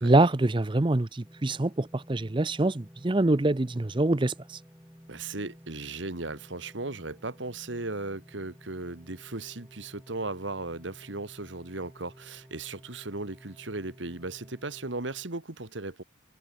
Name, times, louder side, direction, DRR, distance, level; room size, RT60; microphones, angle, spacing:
voice 1, 0.0-4.3, right 2 dB, 25° right, 0.6 m, -24 dB
sound 1, 1.2-15.3, equal, 10° right, 4.1 m, -53 dB
voice 2, 5.1-16.0, right 2 dB, 70° right, 1.9 m, -37 dB
head